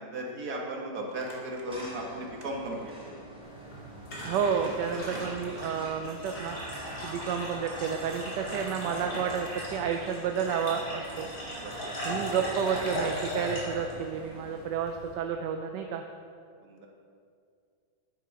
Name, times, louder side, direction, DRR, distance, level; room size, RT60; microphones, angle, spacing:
voice 1, 0.0-3.2 6.8-7.1 11.6-11.8 16.6-16.9, right 1 dB, 55° right, -1 dB, 2.0 m, -37 dB
Crumpling crinkling, 1.1-2.4 2.7-2.8 3.7-3.8 4.2-6.0 8.2-9.8 10.4-10.5 11.4-11.5 11.7-13.8, right 2 dB, 25° right, 1.3 m, -45 dB
sound 1, 1.7-14.7, right 1 dB, 5° right, 1.6 m, -48 dB
sound 2, 3.4-15.1, equal, 80° left, 3.5 m, -38 dB
voice 2, 4.2-6.6 7.0-11.3 12.0-16.0, right 7 dB, 75° right, 5 dB, 1.2 m, -31 dB
10.0 x 7.9 x 4.7 m, 2.3 s
omnidirectional pair, 2.0 m